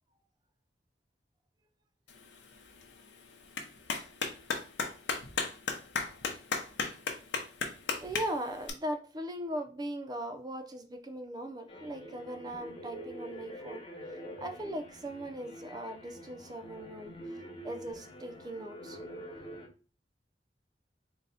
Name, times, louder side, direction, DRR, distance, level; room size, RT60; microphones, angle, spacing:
Clapping, 2.1-8.7, left 5 dB, 85° left, 0.8 m, -37 dB
voice 1, 8.0-19.0, right 1 dB, 25° right, 6 dB, 0.5 m, -39 dB
sound 1, 11.7-19.7, equal, 30° left, 0.8 m, -46 dB
4.0 x 2.2 x 4.0 m, 0.37 s
head